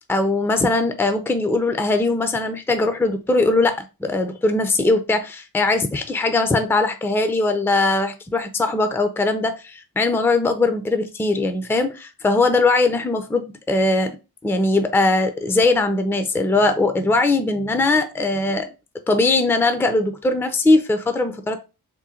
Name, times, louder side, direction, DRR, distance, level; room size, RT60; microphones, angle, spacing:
voice 1, 0.1-14.1 14.4-18.7 19.1-21.6, left 2 dB, 5° left, 0.5 m, -20 dB
3.7 x 2.2 x 4.2 m
cardioid pair, 80°, 40 cm